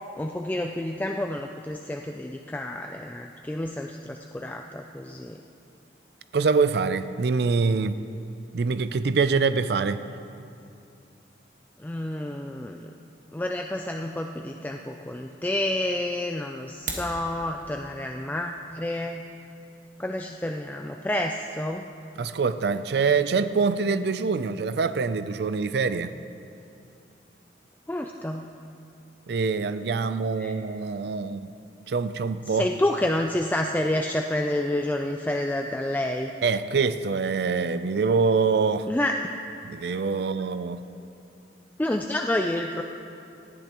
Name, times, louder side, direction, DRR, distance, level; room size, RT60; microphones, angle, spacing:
voice 1, 0.2-5.4 11.8-12.9 13.3-19.2 20.0-21.9 27.9-28.5 30.4-30.5 32.5-36.3 38.9-39.1 41.8-42.8, left 1 dB, 10° left, 3 dB, 0.3 m, -29 dB
voice 2, 6.3-8.0 8.5-10.0 22.2-26.1 29.3-31.5 31.9-32.7 36.4-38.9 39.6-40.8, right 4 dB, 65° right, 12 dB, 0.4 m, -25 dB
sound 1, 16.6-17.2, right 4 dB, 45° right, 1.5 m, -34 dB
19.0 x 13.5 x 3.0 m, 2.6 s
head